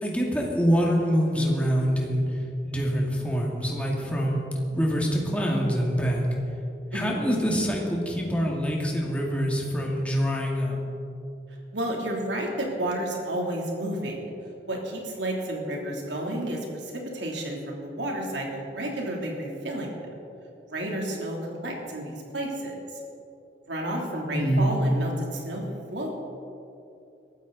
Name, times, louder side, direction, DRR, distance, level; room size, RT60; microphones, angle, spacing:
voice 1, 0.0-2.2 2.6-4.4 4.7-6.2 6.9-10.8 24.3-24.7, equal, 5° left, -2 dB, 2.0 m, -25 dB
voice 2, 11.7-14.3 14.7-19.9 20.7-22.7 23.7-25.6 25.9-26.1, right 1 dB, 90° right, -1 dB, 3.0 m, -31 dB
22.0 x 13.0 x 4.0 m, 2.7 s
head